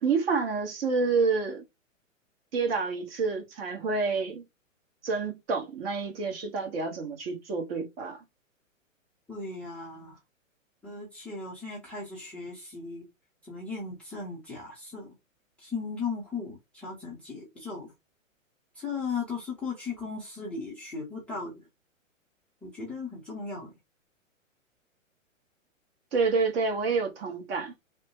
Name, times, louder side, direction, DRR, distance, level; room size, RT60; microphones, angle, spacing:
voice 1, 0.0-1.6 2.5-4.4 5.0-8.2 26.1-27.7, right 4 dB, 45° right, 1.2 m, -28 dB
voice 2, 9.3-10.2 10.8-13.0 13.4-15.1 15.6-17.9 18.8-21.6 22.6-23.7, left 4 dB, 5° left, 0.5 m, -37 dB
3.1 x 2.1 x 3.0 m
figure-of-eight pair, 120°, 40 cm